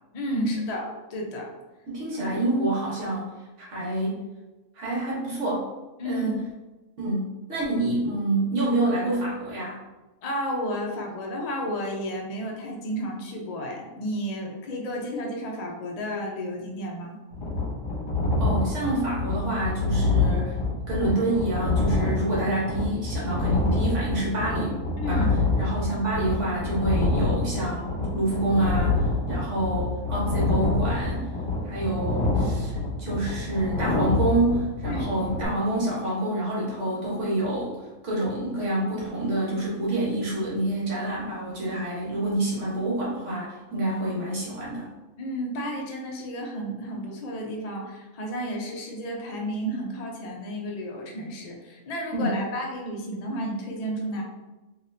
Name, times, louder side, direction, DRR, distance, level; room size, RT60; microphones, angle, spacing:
voice 1, 0.1-1.5 6.0-6.4 10.2-17.2 25.0-25.3 34.9-35.1 45.2-54.2, equal, 60° left, 0 dB, 0.4 m, -32 dB
voice 2, 1.9-3.3 3.7-4.2 4.7-5.6 6.0-6.3 7.0-9.8 18.4-20.6 20.9-24.7 25.1-25.3 25.6-27.9 28.1-31.3 31.6-37.7 38.0-44.9 52.1-52.5, right 1 dB, 55° right, -5 dB, 1.3 m, -27 dB
sound 1, 17.3-35.5, left 2 dB, 35° left, 1.5 m, -26 dB
4.1 x 2.9 x 2.6 m, 1.1 s
omnidirectional pair, 1.5 m